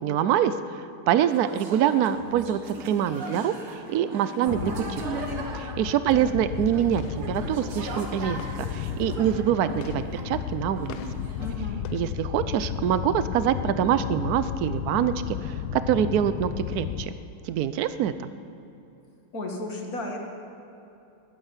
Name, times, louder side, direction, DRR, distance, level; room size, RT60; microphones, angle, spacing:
voice 1, 0.0-4.7 5.1-5.2 5.5-11.0 11.9-17.1 17.4-18.3, right 10 dB, 70° right, 12 dB, 0.9 m, -25 dB
sound 1, 1.3-10.5 10.8-11.6, right 2 dB, 85° right, 2.7 m, -38 dB
sound 2, 4.5-17.1, left 9 dB, 85° left, 1.5 m, -34 dB
voice 2, 4.5-4.9 6.0-6.5 11.4-11.8 19.3-20.2, left 2 dB, 45° left, 1 dB, 2.2 m, -35 dB
21.0 x 8.8 x 7.4 m, 2.8 s
omnidirectional pair, 2.3 m